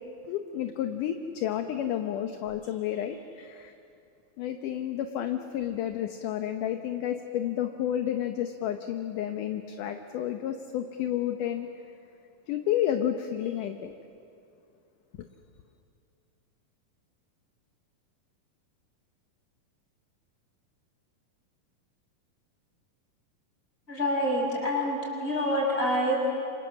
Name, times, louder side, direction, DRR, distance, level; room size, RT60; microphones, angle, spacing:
voice 1, 0.3-3.7 4.4-11.7 12.5-13.9, left 10 dB, 70° left, 6 dB, 2.3 m, -31 dB
voice 2, 23.9-26.2, equal, 15° left, -1 dB, 6.2 m, -27 dB
28.5 x 26.0 x 7.4 m, 2.6 s
omnidirectional pair, 4.1 m